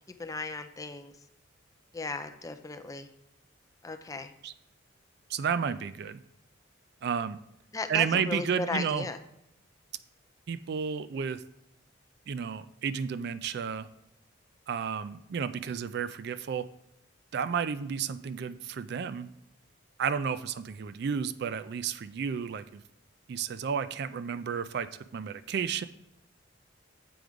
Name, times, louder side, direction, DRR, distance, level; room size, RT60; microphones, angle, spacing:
voice 1, 0.2-1.1 1.9-3.1 3.8-4.3 7.7-9.2, left 3 dB, 15° left, 8 dB, 0.4 m, -36 dB
voice 2, 5.3-6.2 7.0-7.4 7.9-9.1 10.5-11.4 12.3-13.9 14.7-16.7 17.3-19.3 20.0-22.8 23.3-25.8, right 7 dB, 55° right, 14 dB, 0.3 m, -32 dB
7.8 x 4.8 x 5.1 m, 0.81 s
head